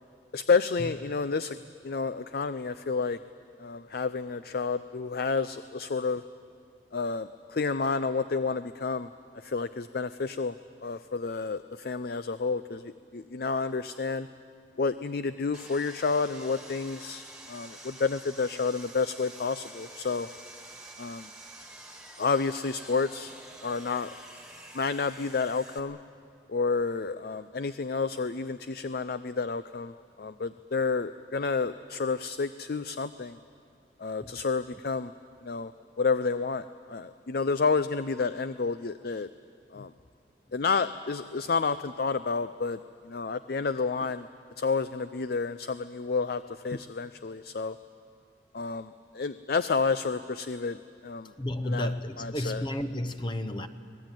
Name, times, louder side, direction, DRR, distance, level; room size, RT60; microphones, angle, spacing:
voice 1, 0.3-1.6 1.8-3.2 3.6-6.2 6.9-9.1 9.3-10.5 10.8-14.3 14.8-20.3 21.0-21.3 22.2-23.3 23.6-24.1 24.7-26.0 26.5-33.4 34.0-35.1 35.4-35.7 36.0-39.3 39.7-39.9 40.5-42.8 43.0-44.3 44.6-47.8 48.5-51.3 51.6-51.9 52.2-52.7, left 4 dB, 55° left, 13 dB, 0.5 m, -30 dB
Sawing, 15.5-25.8, right 2 dB, 5° right, 1.8 m, -48 dB
voice 2, 51.4-53.7, left 1 dB, 25° left, 10 dB, 0.8 m, -32 dB
25.0 x 19.0 x 9.1 m, 2.3 s
head